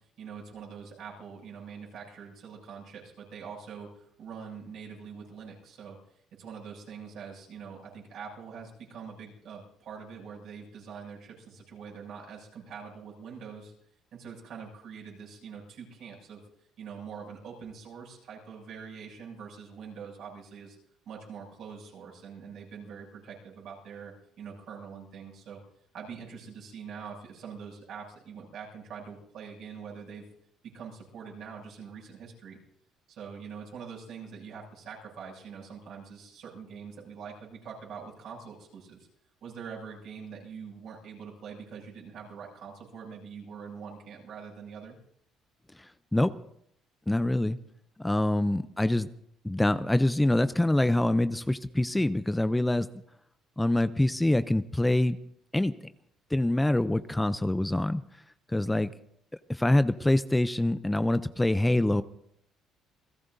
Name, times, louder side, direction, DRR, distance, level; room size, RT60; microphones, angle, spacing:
voice 1, 0.2-6.0 6.4-13.7 14.1-16.4 16.8-20.8 21.1-25.6 25.9-30.2 30.7-32.6 33.1-39.1 39.4-45.0, right 6 dB, 65° right, -3 dB, 7.1 m, -44 dB
voice 2, 47.1-47.6 48.0-49.1 49.4-52.9 53.6-55.2 55.5-55.7 56.3-58.0 58.5-58.9 59.5-62.0, left 1 dB, 10° left, 13 dB, 0.5 m, -25 dB
28.5 x 17.5 x 2.7 m, 0.71 s
cardioid pair, 95°, 0 cm